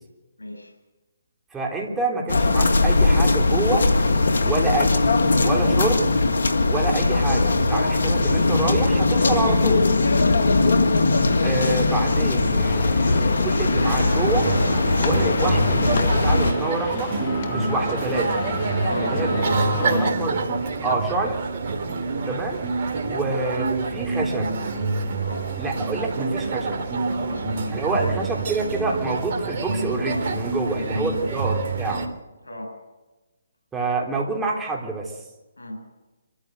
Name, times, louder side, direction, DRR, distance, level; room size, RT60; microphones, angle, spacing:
voice 1, 0.4-0.7 10.1-10.4 18.7-20.1 23.1-23.3 25.2-25.5 27.1-28.1 30.6-31.3 32.4-32.7 35.6-35.8, left 1 dB, 90° left, 4 dB, 7.8 m, -33 dB
voice 2, 1.5-3.9 4.4-6.1 6.7-9.9 11.4-14.5 15.0-17.2 17.5-18.4 19.0-19.4 19.7-20.5 20.8-21.4 22.3-22.6 23.1-24.5 25.6-26.8 27.7-32.1 33.7-35.1, right 3 dB, 10° right, 0 dB, 3.7 m, -27 dB
sound 1, 2.3-16.5, left 3 dB, 70° left, 2.1 m, -20 dB
sound 2, 12.6-20.1, left 6 dB, 45° left, 1.5 m, -32 dB
sound 3, 13.8-32.1, right 3 dB, 45° right, 3.3 m, -27 dB
25.0 x 14.0 x 8.1 m, 1.1 s
hypercardioid pair, 145°, 0 cm